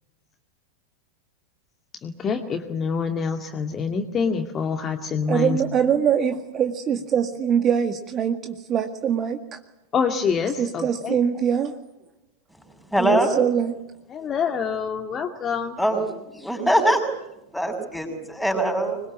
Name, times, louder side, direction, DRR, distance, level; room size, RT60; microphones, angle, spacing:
voice 1, 2.0-5.6 9.9-11.1 14.1-15.8, left 6 dB, 25° left, 5 dB, 2.3 m, -26 dB
voice 2, 5.3-9.6 10.6-11.8 13.0-13.7, right 8 dB, 25° right, 7 dB, 1.9 m, -23 dB
voice 3, 12.9-13.3 15.8-17.2 17.5-19.0, right 1 dB, ahead, 6 dB, 6.3 m, -22 dB
26.0 x 22.0 x 8.7 m, 0.87 s
figure-of-eight pair, 90°, 0 cm